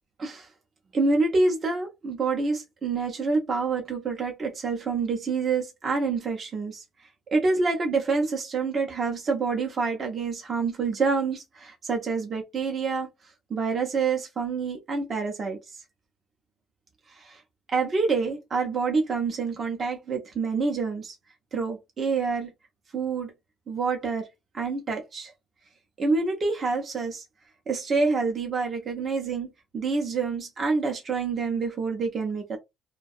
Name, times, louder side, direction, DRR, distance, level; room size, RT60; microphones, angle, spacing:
voice 1, 0.9-6.8 7.3-13.1 13.5-15.8 17.1-17.4 17.7-21.2 21.5-22.5 22.9-23.3 23.7-24.2 24.5-25.3 26.0-27.2 27.7-32.6, right 4 dB, 35° right, 0.6 m, -27 dB
2.4 x 2.2 x 2.6 m
cardioid pair, 120°, 0 cm